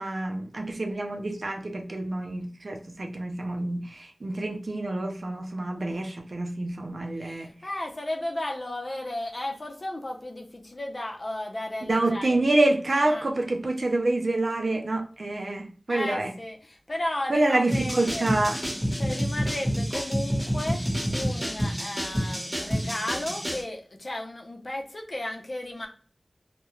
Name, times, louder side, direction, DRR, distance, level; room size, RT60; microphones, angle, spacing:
voice 1, 0.0-7.5 11.8-16.3 17.3-18.6, right 2 dB, 70° right, 0.5 m, -27 dB
voice 2, 7.2-12.4 13.1-13.3 15.9-18.3 19.0-25.9, left 1 dB, 55° left, 0.6 m, -34 dB
sound 1, 17.7-23.6, equal, 10° right, 1.1 m, -28 dB
2.3 x 2.1 x 3.0 m
wide cardioid pair, 50°, 0 cm